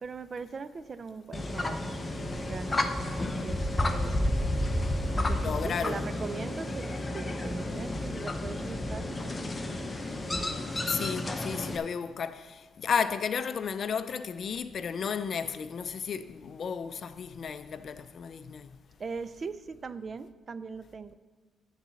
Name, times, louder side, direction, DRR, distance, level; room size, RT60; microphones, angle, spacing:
voice 1, 0.0-2.0 2.4-3.2 3.4-4.4 5.1-9.5 19.0-21.1, right 5 dB, 40° right, 0.4 m, -40 dB
sound 1, 1.3-11.8, left 1 dB, 20° left, 0.8 m, -31 dB
voice 2, 5.4-6.1 10.9-18.7, left 6 dB, 55° left, 0.5 m, -33 dB
9.9 x 4.1 x 7.0 m
cardioid pair, 90°, 0 cm